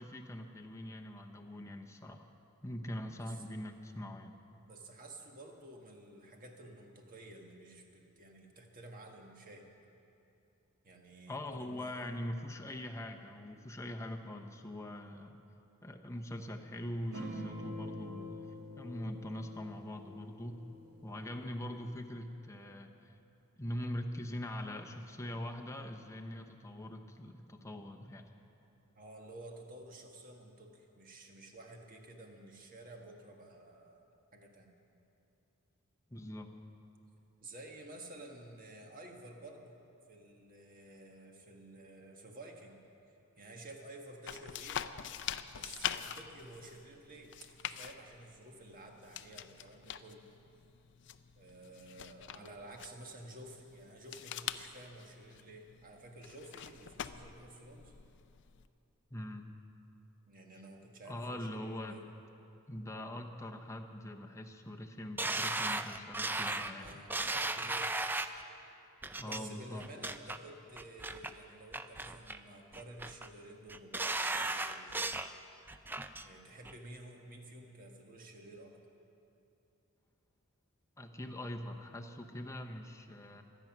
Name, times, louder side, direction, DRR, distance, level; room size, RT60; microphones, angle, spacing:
voice 1, 0.0-2.3 2.6-4.3 11.3-15.4 15.8-18.4 18.8-20.6 21.0-23.1 23.6-28.3 36.1-36.5 59.1-59.5 61.1-62.0 62.7-67.0 69.2-69.8 81.0-83.4, left 1 dB, 15° left, 3 dB, 0.8 m, -43 dB
voice 2, 4.6-9.6 10.8-12.1 12.6-12.8 28.9-34.1 34.3-34.7 37.4-39.8 40.1-42.8 43.4-44.9 45.5-47.3 47.6-50.2 51.4-57.9 60.3-62.0 66.6-68.1 69.2-75.1 76.2-78.8, right 1 dB, 40° right, 2 dB, 1.6 m, -52 dB
sound 1, 17.1-22.0, left 1 dB, 80° right, 2.4 m, -46 dB
sound 2, 44.3-58.7, left 9 dB, 55° left, 0.5 m, -45 dB
sound 3, 65.2-68.4 69.0-69.4 69.8-70.4 70.8-71.3 71.7-72.4 72.7-73.3 73.7-75.3 75.7-76.2 76.6-76.7, right 2 dB, 10° right, 0.4 m, -36 dB
24.0 x 9.3 x 6.0 m, 2.8 s
head